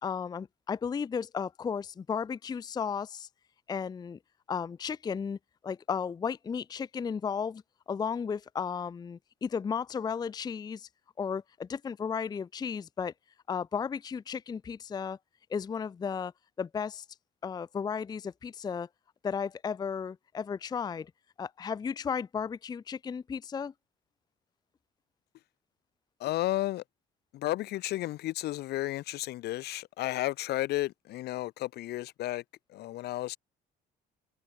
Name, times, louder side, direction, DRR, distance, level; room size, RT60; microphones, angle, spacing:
voice 1, 0.0-3.3 3.7-4.2 4.5-5.4 5.6-7.6 7.9-10.9 11.2-13.1 13.5-15.2 15.5-16.3 16.6-17.0 17.4-18.9 19.2-21.1 21.4-23.7, left 6 dB, 25° left, 0.5 m, -34 dB
voice 2, 26.2-26.8 27.3-32.4 32.7-33.4, left 16 dB, 75° left, 1.5 m, -33 dB
cardioid pair, 110°, 17 cm